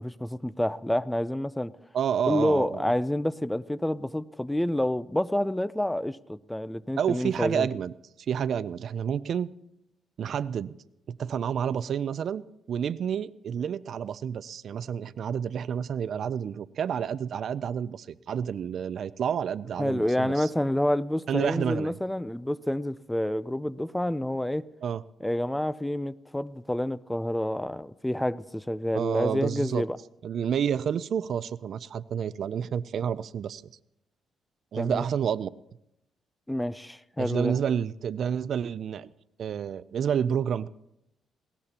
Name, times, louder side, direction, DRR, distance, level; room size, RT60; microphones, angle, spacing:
voice 1, 0.0-1.7 2.3-7.7 19.8-24.7 25.2-30.0 34.7-35.0 36.5-37.6, left 1 dB, 5° left, 0.4 m, -28 dB
voice 2, 1.9-2.8 7.0-7.9 8.3-9.5 10.2-10.8 11.1-12.4 12.7-20.5 21.3-22.0 24.8-25.0 28.9-29.8 30.2-33.6 34.7-35.5 37.2-39.1 39.4-40.7, right 8 dB, 60° right, 0.4 m, -29 dB
20.0 x 18.5 x 2.9 m
cardioid pair, 90°, 0 cm